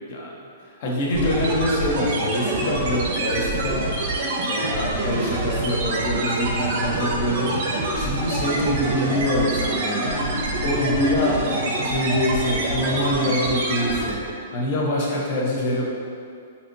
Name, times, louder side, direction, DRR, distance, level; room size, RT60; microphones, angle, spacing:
voice 1, 0.8-4.0 4.4-10.2 10.6-11.5 11.8-14.2 14.5-15.8, left 1 dB, 45° left, -3 dB, 0.6 m, -25 dB
sound 1, 1.1-14.3, right 2 dB, 50° right, 0.5 m, -26 dB
4.0 x 2.7 x 2.5 m, 2.4 s
hypercardioid pair, 165°, 0 cm